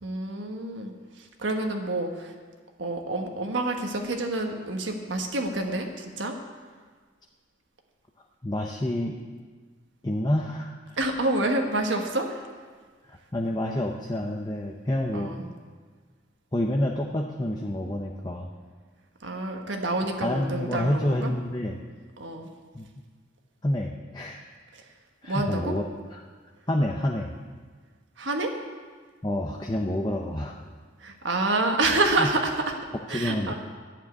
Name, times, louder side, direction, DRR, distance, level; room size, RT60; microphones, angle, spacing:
voice 1, 0.0-2.3 2.8-6.3 11.0-12.4 15.1-15.5 19.2-21.3 22.2-22.5 24.7-24.8 25.3-25.7 28.2-28.5 31.0-32.6 33.1-33.5, right 2 dB, 85° right, 3 dB, 1.4 m, -28 dB
voice 2, 8.4-9.2 10.0-11.0 13.1-15.3 16.5-18.5 20.2-21.8 22.7-22.9 23.6-24.4 25.2-25.8 26.1-26.2 26.7-27.3 29.2-30.6 32.2-32.3 33.1-33.5, left 1 dB, 20° left, 1 dB, 0.7 m, -28 dB
11.0 x 7.5 x 9.4 m, 1.5 s
head